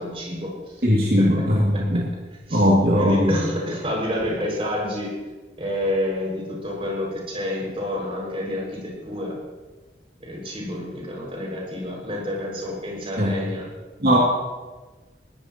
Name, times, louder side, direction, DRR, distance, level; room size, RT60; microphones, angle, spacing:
voice 1, 0.0-0.8 1.2-1.4 1.7-1.8 2.5-2.6 2.9-5.1 5.6-9.3 10.2-13.7, left 1 dB, 30° right, -2 dB, 6.0 m, -29 dB
voice 2, 0.8-2.1 2.5-3.3 13.2-13.3 14.0-14.2, equal, 55° right, -5 dB, 2.6 m, -19 dB
22.0 x 16.5 x 3.0 m, 1.2 s
head